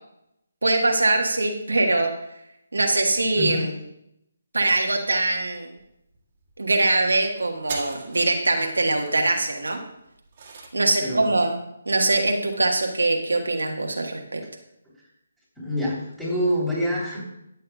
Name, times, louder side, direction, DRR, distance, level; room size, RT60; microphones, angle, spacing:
voice 1, 0.6-2.1 2.7-3.7 4.5-5.7 6.6-9.8 10.7-11.6 11.9-14.4, right 2 dB, 80° right, 2 dB, 1.4 m, -22 dB
voice 2, 3.3-3.7 10.8-11.3 14.8-14.9 15.6-17.3, equal, 5° left, -7 dB, 3.3 m, -27 dB
sound 1, 5.8-5.9 6.1-6.5 6.9-7.2 7.5-10.9, right 4 dB, 40° right, 1.8 m, -40 dB
12.5 x 8.3 x 2.3 m, 0.80 s
figure-of-eight pair, 150°, 0 cm